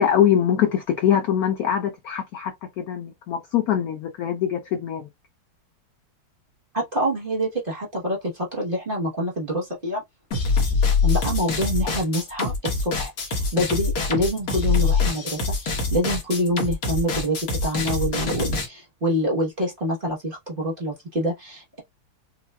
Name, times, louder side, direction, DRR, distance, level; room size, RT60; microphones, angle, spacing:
voice 1, 0.0-5.1, left 9 dB, 85° left, 0.8 m, -23 dB
voice 2, 6.7-10.0 11.0-17.4 17.6-21.8, equal, 35° right, 1.0 m, -26 dB
sound 1, 10.3-18.7, left 4 dB, 50° left, 1.5 m, -24 dB
5.4 x 2.3 x 2.3 m
omnidirectional pair, 2.2 m